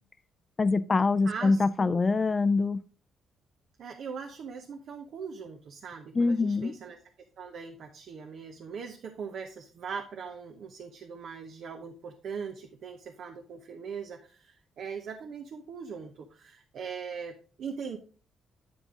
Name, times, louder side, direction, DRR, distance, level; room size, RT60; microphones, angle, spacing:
voice 1, 0.6-2.8 6.1-6.7, left 3 dB, 30° left, 0.4 m, -24 dB
voice 2, 1.2-2.0 3.8-7.0 7.4-18.0, right 6 dB, 65° right, 0.9 m, -40 dB
9.7 x 5.2 x 3.7 m
cardioid pair, 90°, 0 cm